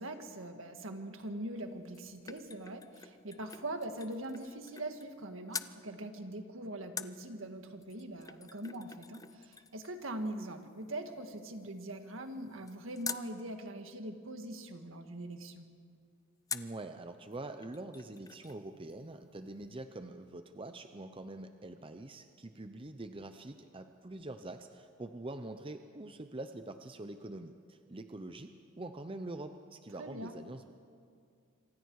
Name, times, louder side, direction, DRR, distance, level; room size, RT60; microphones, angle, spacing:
voice 1, 0.0-15.7 30.0-30.4, right 1 dB, 65° right, 6 dB, 1.8 m, -42 dB
sound 1, 1.6-5.2 5.5-5.8 7.0-13.3 16.5-16.8 17.3-17.4 17.6-18.6 18.9-19.0, left 6 dB, 15° left, 0.5 m, -47 dB
voice 2, 16.5-30.9, right 2 dB, 25° right, 8 dB, 0.7 m, -45 dB
27.0 x 25.0 x 4.8 m, 2.3 s
head